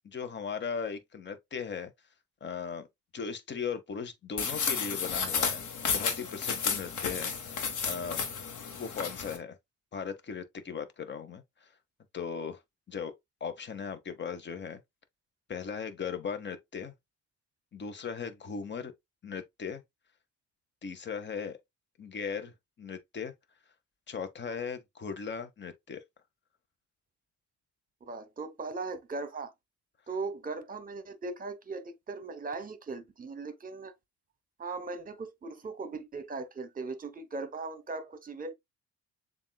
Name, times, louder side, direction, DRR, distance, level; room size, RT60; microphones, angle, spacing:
voice 1, 0.0-1.9 2.4-2.9 3.1-5.6 5.9-8.2 8.7-9.6 9.9-11.7 12.1-12.6 12.9-13.1 13.4-14.8 15.5-16.9 17.7-18.9 19.2-19.8 20.8-21.6 22.0-23.3 24.1-26.0, left 6 dB, 35° left, 1.0 m, -38 dB
sound 1, 4.4-9.4, left 6 dB, 75° left, 1.1 m, -32 dB
voice 2, 28.0-29.5 30.1-33.9 34.6-38.5, right 3 dB, 30° right, 0.9 m, -38 dB
7.1 x 2.5 x 2.3 m
cardioid pair, 90°, 30 cm